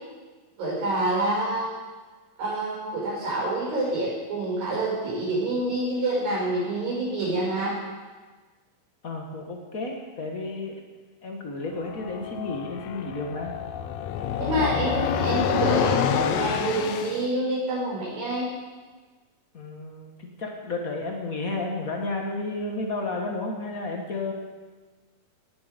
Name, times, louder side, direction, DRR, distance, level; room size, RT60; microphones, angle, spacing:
voice 1, 0.6-1.8 2.4-7.7 14.4-18.5, right 2 dB, 80° right, -6 dB, 7.7 m, -27 dB
voice 2, 9.0-10.8 11.2-13.5 19.5-24.3, left 2 dB, 55° left, 1 dB, 0.9 m, -32 dB
sound 1, 11.8-17.2, left 9 dB, 75° left, 1.6 m, -27 dB
17.5 x 11.5 x 5.2 m, 1.3 s
omnidirectional pair, 4.0 m